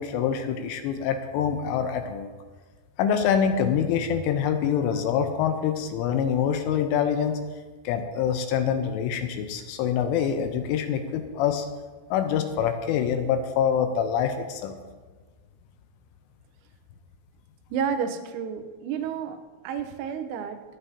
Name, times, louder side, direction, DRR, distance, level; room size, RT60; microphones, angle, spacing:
voice 1, 0.0-2.3 3.0-7.4 7.8-11.7 12.1-14.8, left 8 dB, 85° left, 7 dB, 3.1 m, -25 dB
voice 2, 17.7-20.6, right 7 dB, 90° right, 7 dB, 3.7 m, -31 dB
23.0 x 9.0 x 2.8 m, 1.4 s
omnidirectional pair, 6.0 m